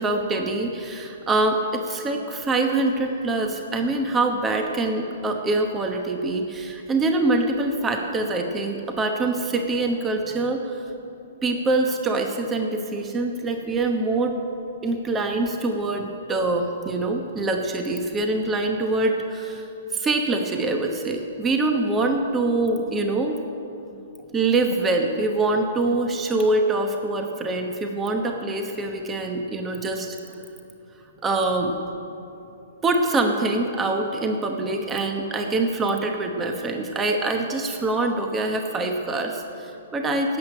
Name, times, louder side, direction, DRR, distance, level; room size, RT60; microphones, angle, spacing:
voice 1, 0.0-10.8 11.4-14.3 14.8-19.7 19.9-23.4 24.3-30.2 31.2-31.7 32.8-40.4, right 2 dB, 15° right, 3 dB, 1.1 m, -24 dB
12.5 x 8.2 x 8.9 m, 2.9 s
hypercardioid pair, 135°, 0 cm